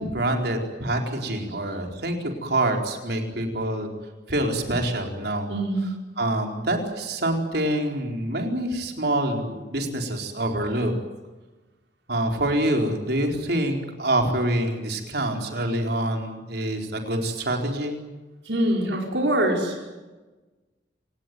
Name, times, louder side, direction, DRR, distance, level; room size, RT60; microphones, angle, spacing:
voice 1, 0.0-3.9 4.3-5.5 6.2-10.9 12.1-18.0, right 1 dB, 65° right, 3 dB, 4.5 m, -26 dB
voice 2, 5.5-5.8 18.5-19.9, right 1 dB, 85° right, 0 dB, 5.2 m, -24 dB
27.0 x 19.0 x 9.4 m, 1.2 s
head